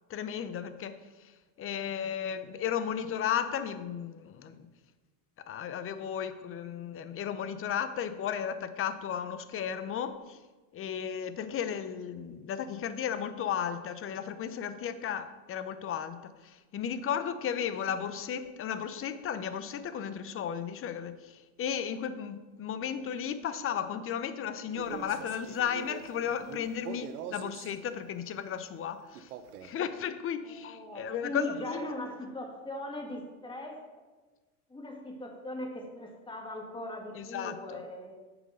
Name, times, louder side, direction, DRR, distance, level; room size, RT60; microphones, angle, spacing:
voice 1, 0.1-0.9 1.6-4.6 5.5-10.4 10.7-16.2 16.7-21.1 21.6-29.3 29.6-31.9 37.1-37.6, left 8 dB, 30° left, 11 dB, 0.8 m, -34 dB
Male speech man speaking, 24.7-27.8 29.1-29.8, right 8 dB, 85° right, 0.9 m, -43 dB
voice 2, 30.4-33.8 34.7-38.2, left 1 dB, 10° left, 1 dB, 2.2 m, -39 dB
9.3 x 6.1 x 6.5 m, 1.2 s
supercardioid pair, 115°, 45 cm